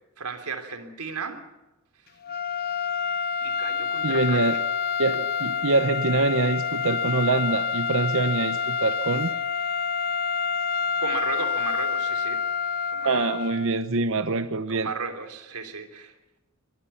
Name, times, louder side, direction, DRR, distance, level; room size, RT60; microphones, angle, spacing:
voice 1, 0.2-1.4 3.4-4.6 11.0-12.4 12.9-13.2 14.3-16.1, right 4 dB, 90° right, 6 dB, 3.3 m, -35 dB
sound 1, 2.2-13.8, left 6 dB, 45° left, 0.9 m, -28 dB
voice 2, 4.0-4.6 5.0-9.3 13.0-14.9, right 3 dB, 60° right, 10 dB, 0.9 m, -24 dB
25.0 x 21.5 x 5.8 m, 1.0 s
head